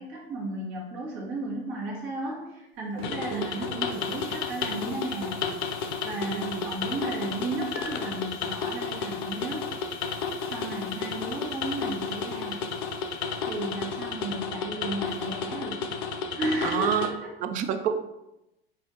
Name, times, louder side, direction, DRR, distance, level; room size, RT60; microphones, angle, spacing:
voice 1, 0.0-5.6 6.0-9.6 10.5-12.7 13.4-15.8 16.3-17.3, right 1 dB, 40° right, -4 dB, 1.5 m, -34 dB
Fireworks, 1.9-2.1 2.5-2.6 3.0-6.8 7.1-7.9, right 2 dB, 85° right, 0.6 m, -49 dB
Hiss, 2.7-14.5 15.0-15.4, left 3 dB, 20° left, 1.2 m, -55 dB
sound 1, 3.0-17.1, left 5 dB, 55° left, 0.6 m, -32 dB
voice 2, 6.3-6.7 16.6-17.1 17.4-18.0, right 8 dB, 25° right, 9 dB, 0.4 m, -29 dB
5.0 x 2.7 x 3.8 m, 0.90 s
figure-of-eight pair, 85°, 30 cm